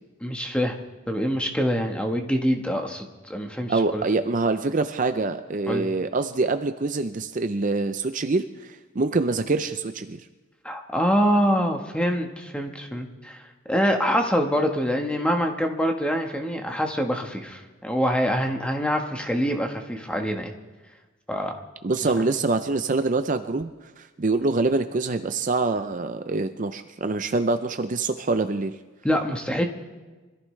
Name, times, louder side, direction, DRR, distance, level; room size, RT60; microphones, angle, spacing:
voice 1, 0.2-0.8 1.1-4.0 5.7-5.9 10.6-13.4 13.7-20.5 21.3-21.5 29.0-29.6, equal, 5° left, 3 dB, 1.2 m, -25 dB
voice 2, 3.7-10.2 21.8-23.7 24.0-28.8, right 3 dB, 40° right, 9 dB, 0.5 m, -25 dB
25.0 x 14.5 x 3.2 m, 1.3 s
head